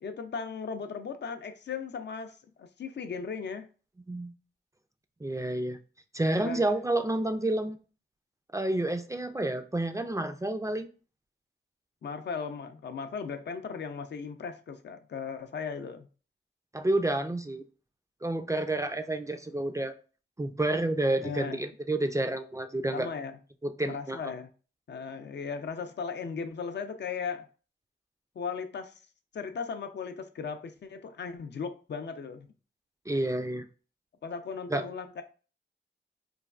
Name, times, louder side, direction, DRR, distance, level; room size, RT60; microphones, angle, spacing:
voice 1, 0.0-3.7 6.4-6.7 12.0-16.1 21.2-21.6 22.9-23.4 23.8-24.5 24.9-27.5 28.4-29.0 29.3-32.5 34.2-35.2, left 5 dB, 65° left, 0.4 m, -37 dB
voice 2, 5.2-5.8 6.1-7.8 8.5-10.9 16.7-17.6 18.2-19.9 20.4-23.1 23.6-24.2 33.1-33.7 34.7-34.8, right 1 dB, 15° right, 0.3 m, -29 dB
3.2 x 2.3 x 2.3 m
cardioid pair, 55°, 19 cm